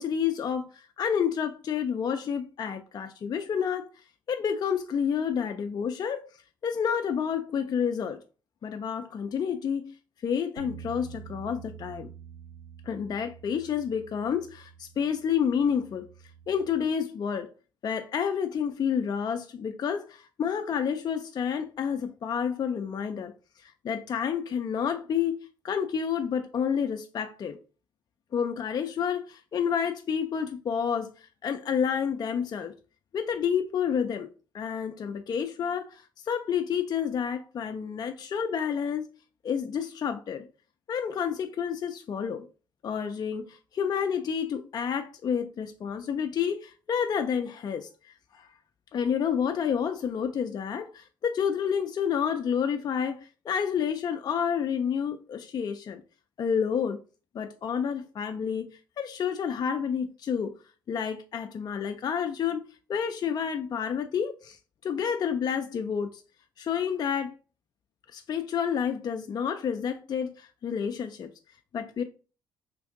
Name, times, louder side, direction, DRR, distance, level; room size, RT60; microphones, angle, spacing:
voice 1, 0.0-6.3 6.6-8.2 8.6-10.0 10.2-12.1 12.9-16.1 16.5-17.5 17.8-23.3 23.6-25.4 25.6-27.6 28.3-32.7 33.1-34.3 34.5-39.1 39.4-40.5 40.9-42.5 42.8-47.9 48.3-48.5 48.9-56.0 56.4-57.0 57.3-60.5 60.9-62.6 62.9-64.6 64.8-66.2 66.6-67.4 68.1-71.3 71.7-72.0, left 7 dB, 40° left, 0.3 m, -29 dB
sound 1, 10.6-16.8, right 9 dB, 65° right, 0.5 m, -48 dB
2.6 x 2.5 x 3.5 m
hypercardioid pair, 50°, 11 cm